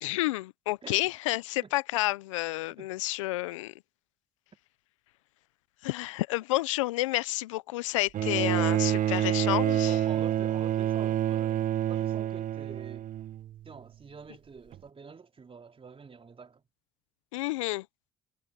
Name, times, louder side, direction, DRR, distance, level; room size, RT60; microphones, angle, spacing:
voice 1, 0.0-3.7 5.8-9.9 17.3-17.8, left 19 dB, 85° left, 0.7 m, -30 dB
Bowed string instrument, 8.1-13.6 14.7-14.8, right 11 dB, 55° right, 1.2 m, -28 dB
voice 2, 9.9-13.1 13.6-16.6, right 5 dB, 35° right, 4.4 m, -46 dB
hypercardioid pair, 50°, 16 cm